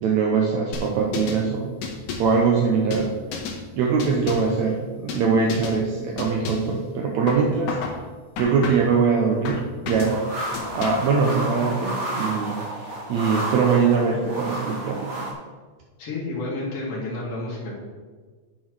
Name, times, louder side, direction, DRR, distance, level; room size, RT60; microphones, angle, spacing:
voice 1, 0.0-1.7 2.2-3.1 3.8-7.8 8.4-10.2 10.8-15.3, right 5 dB, 70° right, 0 dB, 2.0 m, -22 dB
sound 1, 0.7-1.4 1.8-2.4 2.9-3.6 4.0-4.6 5.1-5.2 5.5-5.8 6.2-6.7 7.3-8.0 8.4-9.0 9.4-10.2 10.5-11.1, left 5 dB, 80° left, 2.6 m, -32 dB
sound 2, 10.0-15.3, right 1 dB, 35° right, 1.5 m, -31 dB
voice 2, 16.0-17.8, left 2 dB, 50° left, -5 dB, 2.8 m, -30 dB
9.2 x 4.5 x 6.1 m, 1.4 s
omnidirectional pair, 3.6 m